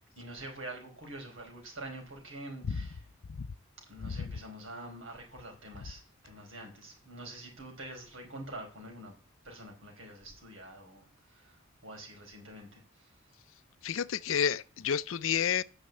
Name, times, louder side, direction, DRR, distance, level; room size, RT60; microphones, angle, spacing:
voice 1, 0.2-3.0 3.9-9.1 9.4-13.1, right 1 dB, 70° right, 4.7 m, -46 dB
voice 2, 13.8-15.6, left 7 dB, 70° left, 0.5 m, -30 dB
9.8 x 6.3 x 8.0 m
head